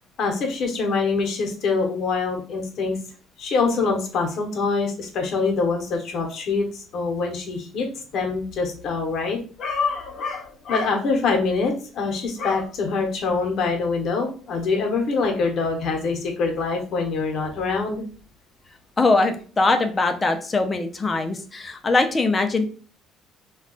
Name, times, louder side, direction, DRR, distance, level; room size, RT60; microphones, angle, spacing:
voice 1, 0.2-3.0 3.4-7.9 8.1-18.0, left 4 dB, 60° left, 2 dB, 0.9 m, -24 dB
voice 2, 19.0-22.6, left 3 dB, 25° left, 6 dB, 0.5 m, -21 dB
2.3 x 2.3 x 3.7 m, 0.40 s
cardioid pair, 95°, 0 cm